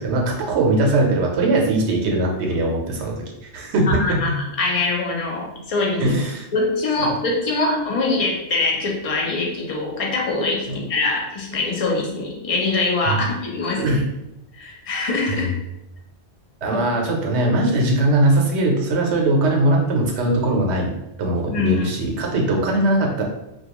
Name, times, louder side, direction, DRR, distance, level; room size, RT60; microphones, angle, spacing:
voice 1, 0.0-4.4 6.0-6.5 10.7-10.8 13.1-13.3 13.8-14.0 15.3-15.5 16.6-20.9 21.2-23.2, right 1 dB, 80° right, 0 dB, 0.9 m, -20 dB
voice 2, 3.9-6.2 6.5-13.9 14.5-15.5 16.7-16.8 21.5-21.9, left 3 dB, 45° left, -1 dB, 0.5 m, -23 dB
2.3 x 2.2 x 2.9 m, 0.86 s
omnidirectional pair, 1.1 m